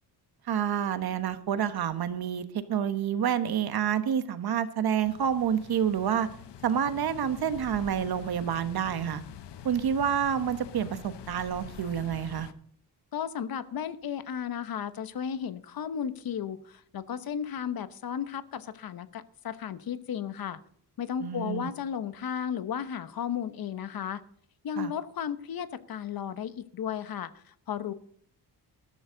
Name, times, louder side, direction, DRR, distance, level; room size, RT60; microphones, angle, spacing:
voice 1, 0.5-6.3 6.6-9.2 9.6-12.5 21.2-21.7 24.8-24.9, right 8 dB, 65° right, 11 dB, 1.3 m, -28 dB
sound 1, 5.0-12.5, left 9 dB, 90° left, 1.1 m, -45 dB
voice 2, 13.1-20.6 21.0-24.2 24.6-27.9, left 8 dB, 60° left, 13 dB, 1.0 m, -34 dB
13.5 x 13.5 x 3.9 m, 0.62 s
cardioid pair, 125°, 40 cm